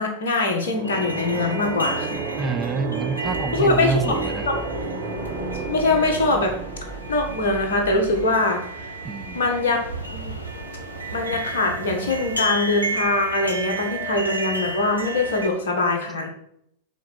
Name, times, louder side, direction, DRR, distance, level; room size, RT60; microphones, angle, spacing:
voice 1, 0.0-2.2 3.5-3.9 4.5-4.6 5.7-6.5 7.1-8.9 9.3-9.8 10.1-10.3 11.1-16.3, left 2 dB, 60° left, 3 dB, 1.5 m, -22 dB
sound 1, 0.6-8.3, right 4 dB, 70° right, 1.7 m, -31 dB
sound 2, 0.8-15.5, right 2 dB, 90° right, 1.0 m, -33 dB
voice 2, 2.4-4.5 9.0-9.4, right 4 dB, 15° right, 8 dB, 0.5 m, -27 dB
sound 3, 3.2-4.9 5.2-8.3, equal, 20° left, 0.9 m, -39 dB
6.2 x 4.2 x 6.0 m, 0.72 s
figure-of-eight pair, 90°, 0 cm